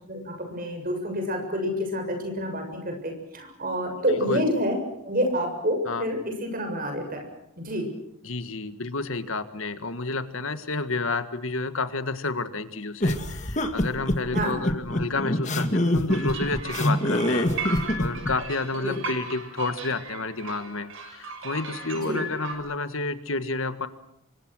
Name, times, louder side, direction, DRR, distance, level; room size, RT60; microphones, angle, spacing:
voice 1, 0.1-4.8 5.0-7.2 7.6-7.9 14.3-14.6 18.8-19.0 22.0-22.3, equal, 40° right, 5 dB, 7.0 m, -28 dB
voice 2, 8.2-23.9, left 3 dB, 65° left, 11 dB, 1.7 m, -30 dB
sound 1, 13.0-18.3, left 1 dB, 30° left, 2.1 m, -24 dB
sound 2, 16.1-22.6, right 4 dB, 55° right, 6.8 m, -37 dB
28.0 x 25.0 x 6.3 m, 0.80 s
head